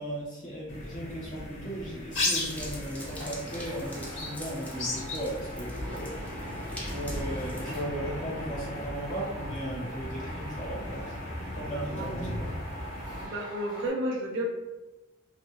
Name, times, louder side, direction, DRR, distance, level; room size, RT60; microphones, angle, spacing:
voice 1, 0.0-6.2 6.5-6.6 6.9-11.1 11.5-12.5, right 1 dB, 40° left, -5 dB, 0.9 m, -37 dB
sound 1, 0.7-13.2, left 1 dB, 65° left, 0.8 m, -36 dB
sound 2, 2.1-7.8, left 1 dB, 5° left, 0.3 m, -45 dB
sound 3, 2.5-2.6 3.1-13.9, right 1 dB, 20° right, 0.7 m, -44 dB
voice 2, 11.6-12.1 13.2-14.4, right 1 dB, 60° right, 0 dB, 0.6 m, -32 dB
2.7 x 2.6 x 2.3 m, 1.1 s
head